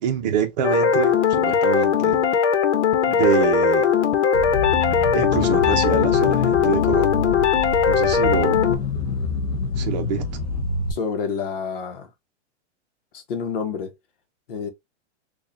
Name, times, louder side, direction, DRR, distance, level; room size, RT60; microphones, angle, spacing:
voice 1, 0.0-2.2 3.1-3.9 5.1-7.1 7.9-8.6 9.8-10.2, right 8 dB, 35° right, 0.7 m, -25 dB
sound 1, 0.6-8.8, left 7 dB, 80° left, 1.0 m, -19 dB
sound 2, 4.3-10.9, left 3 dB, 30° left, 0.7 m, -26 dB
voice 2, 10.9-12.1 13.1-13.9 14.5-14.7, left 6 dB, 50° left, 1.0 m, -28 dB
4.6 x 2.4 x 2.6 m
supercardioid pair, 175°, 35 cm